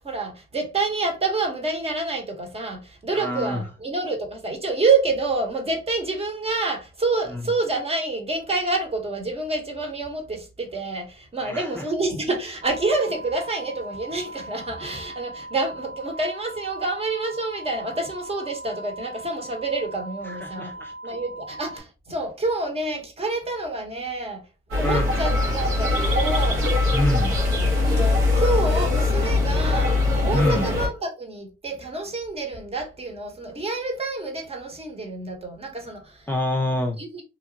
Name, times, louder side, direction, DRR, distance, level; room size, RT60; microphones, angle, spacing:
voice 1, 0.0-24.4 24.7-26.6 27.8-36.3 37.0-37.2, right 3 dB, 30° right, 0.9 m, -28 dB
voice 2, 3.1-3.6 7.3-7.4 11.4-11.8 20.3-20.9 24.8-25.1 26.9-27.4 30.3-30.7 36.3-37.0, left 1 dB, 10° left, 0.4 m, -26 dB
sound 1, 12.6-21.8, right 1 dB, 55° right, 0.9 m, -40 dB
sound 2, 24.7-30.9, left 2 dB, 85° right, 1.3 m, -21 dB
2.9 x 2.3 x 2.7 m
cardioid pair, 90°, 20 cm